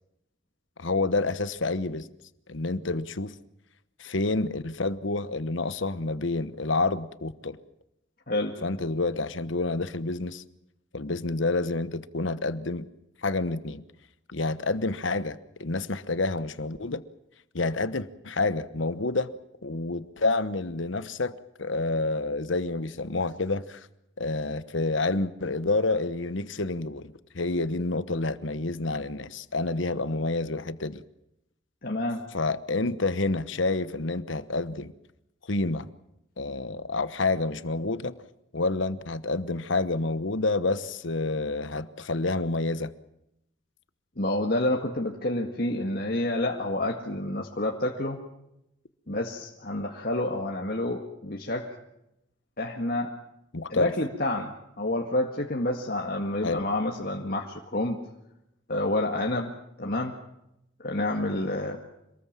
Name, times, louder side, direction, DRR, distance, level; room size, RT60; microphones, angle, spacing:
voice 1, 0.8-2.1 2.5-3.4 4.0-7.6 8.6-10.4 10.9-12.9 13.2-13.8 14.3-17.0 17.5-19.3 19.6-23.9 24.2-31.0 32.3-34.9 35.5-35.9 36.4-38.2 38.5-42.9 53.5-53.9 56.4-56.6, left 3 dB, 75° left, 14 dB, 1.1 m, -28 dB
voice 2, 8.3-8.6 31.8-32.2 44.2-48.2 49.1-51.7 52.6-53.1 53.7-58.0 58.7-59.5 59.8-60.1 60.8-61.8, left 1 dB, 50° left, 0 dB, 2.0 m, -29 dB
26.5 x 20.0 x 7.5 m, 0.82 s
head